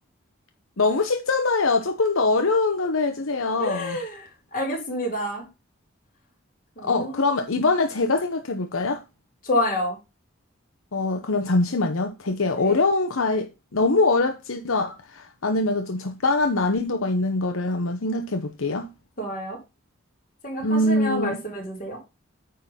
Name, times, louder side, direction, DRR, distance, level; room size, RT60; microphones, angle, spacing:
voice 1, 0.8-4.0 6.8-9.0 10.9-18.9 20.6-21.4, left 3 dB, 80° left, 0.9 m, -23 dB
voice 2, 3.6-5.5 6.8-7.3 9.4-10.0 12.6-12.8 19.2-19.6 20.4-22.0, left 1 dB, 40° left, 4.0 m, -28 dB
9.4 x 3.9 x 5.6 m
head